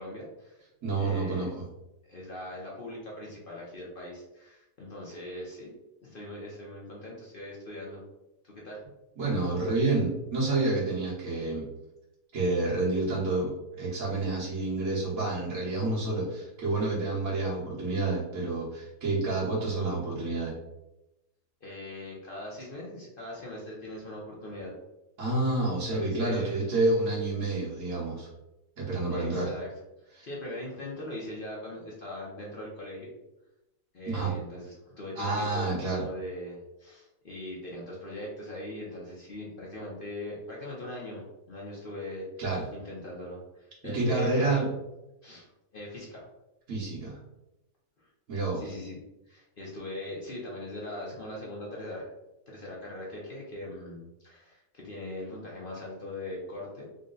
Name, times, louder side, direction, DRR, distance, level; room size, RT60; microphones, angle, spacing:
voice 1, 0.0-0.6 1.0-1.5 2.0-5.7 6.0-8.0 8.4-8.8 21.6-24.7 25.9-26.7 29.1-29.7 30.2-33.1 33.9-42.3 42.7-44.7 45.2-45.5 45.7-46.2 48.0-48.1 48.5-49.0 49.3-52.0 52.5-56.9, left 1 dB, 50° left, -4 dB, 0.6 m, -40 dB
voice 2, 0.8-1.5 9.2-11.7 12.3-13.5 13.8-20.5 25.2-28.3 28.8-29.5 30.1-30.3 34.0-34.3 35.1-36.0 42.4-42.6 43.8-44.7 46.7-47.2 48.3-48.6, right 2 dB, 55° right, -10 dB, 1.3 m, -29 dB
3.9 x 2.1 x 3.7 m, 0.94 s
omnidirectional pair, 1.8 m